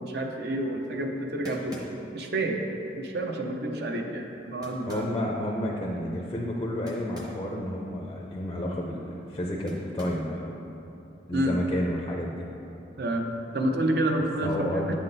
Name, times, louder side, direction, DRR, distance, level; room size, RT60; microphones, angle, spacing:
voice 1, 0.0-1.8 2.1-2.6 3.0-5.1 11.3-11.6 13.0-14.9, right 1 dB, 60° right, 3 dB, 0.6 m, -29 dB
sound 1, 0.8-0.9 1.4-2.2 4.6-5.2 6.9-7.5 7.8-7.9 9.7-10.3, left 1 dB, 20° right, 0.8 m, -44 dB
voice 2, 4.9-10.6 11.3-12.5 14.4-14.9, equal, 25° left, -1 dB, 0.4 m, -31 dB
8.3 x 5.8 x 2.6 m, 2.9 s
head